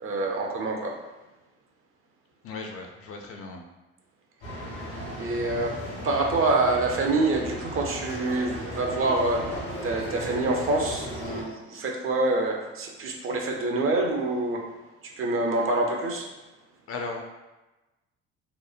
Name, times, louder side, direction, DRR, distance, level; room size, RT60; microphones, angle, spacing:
voice 1, 0.0-0.9 5.2-5.8 6.0-9.5 9.8-14.6 15.2-16.3, right 2 dB, 40° right, 1 dB, 0.5 m, -26 dB
voice 2, 2.4-3.6 16.9-17.2, left 3 dB, 45° left, 2 dB, 0.5 m, -36 dB
sound 1, 4.4-11.4, equal, 85° left, 0.9 m, -36 dB
2.9 x 2.1 x 2.4 m, 1.1 s
hypercardioid pair, 55°, 33 cm